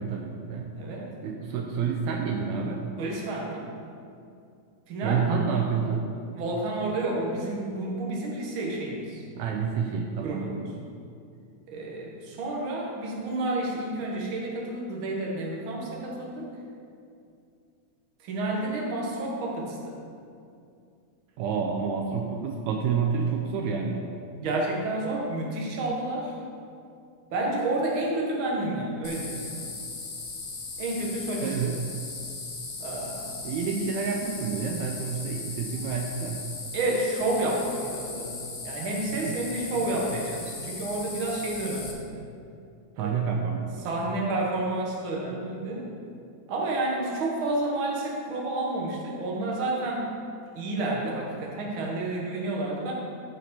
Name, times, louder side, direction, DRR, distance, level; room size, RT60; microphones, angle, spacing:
voice 1, 0.0-0.7 1.2-2.9 5.0-6.1 9.4-10.5 21.4-24.1 31.4-31.8 33.4-36.4 39.2-39.6 39.9-40.0 43.0-43.9, right 6 dB, 80° right, 1 dB, 1.9 m, -29 dB
voice 2, 0.7-1.1 3.0-3.7 4.9-5.2 6.3-9.2 10.2-10.7 11.7-16.5 18.2-20.0 24.4-26.3 27.3-29.7 30.8-31.5 32.8-33.4 36.7-42.2 43.0-43.2 43.8-45.9 46.5-50.1 50.5-52.9, right 2 dB, 50° right, -2 dB, 1.9 m, -30 dB
sound 1, 29.0-41.9, left 3 dB, 45° left, 1.7 m, -38 dB
13.5 x 5.2 x 4.3 m, 2.4 s
omnidirectional pair, 3.4 m